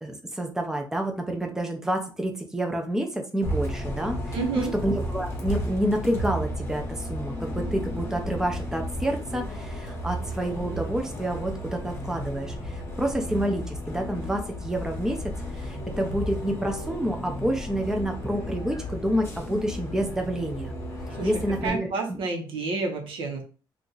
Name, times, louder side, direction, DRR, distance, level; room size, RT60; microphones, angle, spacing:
voice 1, 0.0-15.2 15.5-20.7 21.2-22.2, right 1 dB, 5° right, 3 dB, 0.5 m, -29 dB
Bus, 3.4-21.7, equal, 30° left, 0.8 m, -33 dB
voice 2, 4.3-4.7 21.2-21.3 21.6-23.4, right 3 dB, 85° right, 3 dB, 0.9 m, -29 dB
2.8 x 2.4 x 3.8 m, 0.36 s
cardioid pair, 135°, 9 cm